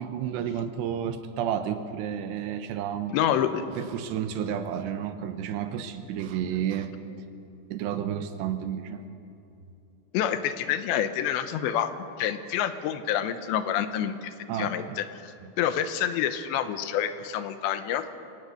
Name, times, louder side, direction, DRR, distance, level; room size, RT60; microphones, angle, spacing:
voice 1, 0.0-3.2 3.8-6.9 7.7-9.0 14.5-15.0 15.4-15.5, right 9 dB, 80° right, 9 dB, 3.0 m, -31 dB
voice 2, 3.1-3.6 10.1-18.1, left 10 dB, 80° left, 10 dB, 3.1 m, -28 dB
24.5 x 18.0 x 6.7 m, 2.8 s
omnidirectional pair, 5.2 m